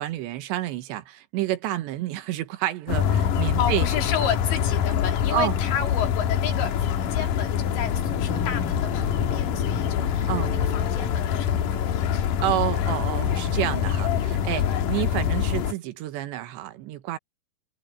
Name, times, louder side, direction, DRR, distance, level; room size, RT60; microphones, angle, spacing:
voice 1, 0.0-3.9 5.3-5.6 10.3-10.5 12.4-17.2, right 14 dB, 90° right, 3.5 m, -29 dB
sound 1, 2.9-15.7, left 9 dB, 65° left, 2.4 m, -25 dB
voice 2, 3.6-12.3 14.6-15.0, left 8 dB, 85° left, 5.1 m, -32 dB
sound 2, 8.0-13.8, equal, 30° left, 7.7 m, -40 dB
omnidirectional pair, 5.0 m